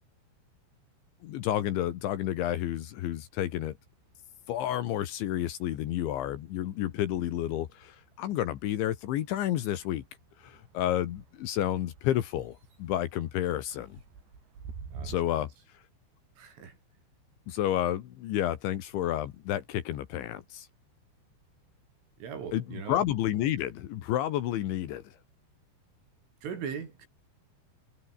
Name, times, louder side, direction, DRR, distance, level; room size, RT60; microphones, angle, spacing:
voice 1, 1.2-3.8 4.5-10.0 10.4-14.0 15.0-15.5 17.5-20.7 22.5-22.6 22.9-25.1, left 12 dB, 75° left, 3.9 m, -30 dB
sound 1, 1.9-3.2 3.5-15.2, right 5 dB, 65° right, 7.8 m, -51 dB
voice 2, 14.9-15.5 16.4-16.8 22.2-23.0 26.4-27.1, right 7 dB, 85° right, 7.2 m, -40 dB
omnidirectional pair, 5.5 m